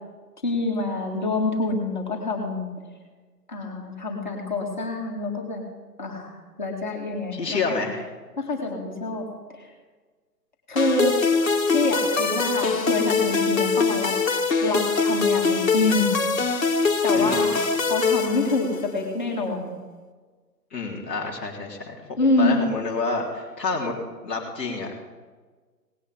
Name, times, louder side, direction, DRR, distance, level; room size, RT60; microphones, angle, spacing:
voice 1, 0.4-2.8 3.5-5.6 6.0-6.3 6.6-7.8 8.4-9.7 10.7-11.2 11.7-14.2 14.6-16.2 17.0-17.6 17.9-19.7 22.2-22.6, left 2 dB, 30° left, -2 dB, 1.9 m, -26 dB
voice 2, 7.3-8.0 17.1-17.4 20.7-23.9 24.2-24.9, left 3 dB, 5° left, -10 dB, 1.4 m, -29 dB
sound 1, 10.8-19.0, left 4 dB, 55° left, 1.4 m, -23 dB
18.5 x 9.1 x 5.1 m, 1.4 s
hypercardioid pair, 170°, 49 cm